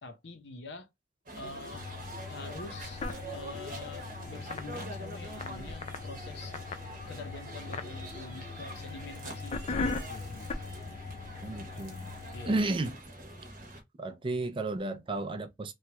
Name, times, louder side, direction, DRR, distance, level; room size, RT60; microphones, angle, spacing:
voice 1, 0.0-0.9 1.3-1.9 2.3-3.0 3.3-6.6 7.1-10.5 12.3-12.5, left 3 dB, 75° left, 0.7 m, -46 dB
sound 1, 1.3-13.8, right 1 dB, 50° right, 0.9 m, -45 dB
sound 2, 1.7-12.6, left 4 dB, 40° left, 0.4 m, -40 dB
voice 2, 11.4-12.1 12.4-13.0 14.0-15.7, right 2 dB, 30° right, 0.4 m, -32 dB
3.1 x 2.3 x 2.9 m
head